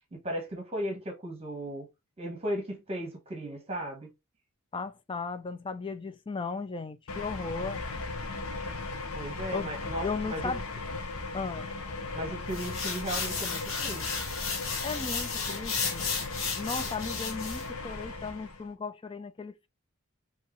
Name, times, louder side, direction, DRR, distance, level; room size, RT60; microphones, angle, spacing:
voice 1, 0.1-1.9 2.2-4.1 9.1-10.4 12.1-14.0, equal, 30° right, 1.1 m, -36 dB
voice 2, 4.7-7.9 9.5-9.7 10.0-10.6 11.3-11.7 14.8-16.1 16.6-19.7, left 4 dB, 25° left, 0.4 m, -36 dB
sound 1, 7.1-18.7, left 3 dB, 85° left, 0.8 m, -37 dB
sound 2, 12.5-17.7, left 5 dB, 65° left, 1.1 m, -34 dB
4.6 x 3.0 x 3.0 m
head